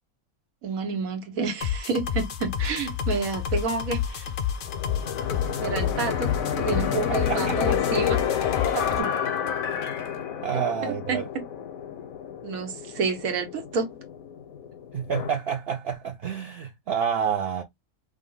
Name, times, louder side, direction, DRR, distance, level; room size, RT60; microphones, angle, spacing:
voice 1, 0.6-4.3 5.6-6.3 6.6-9.1 10.9-11.2 12.4-13.9, right 4 dB, 90° right, 1.5 m, -29 dB
sound 1, 1.6-9.0, left 9 dB, 60° left, 0.5 m, -30 dB
sound 2, 4.7-15.3, left 8 dB, 85° left, 1.2 m, -30 dB
voice 2, 6.9-7.7 10.4-11.2 14.9-17.6, right 7 dB, 60° right, 0.7 m, -29 dB
5.1 x 2.1 x 3.8 m
omnidirectional pair, 1.4 m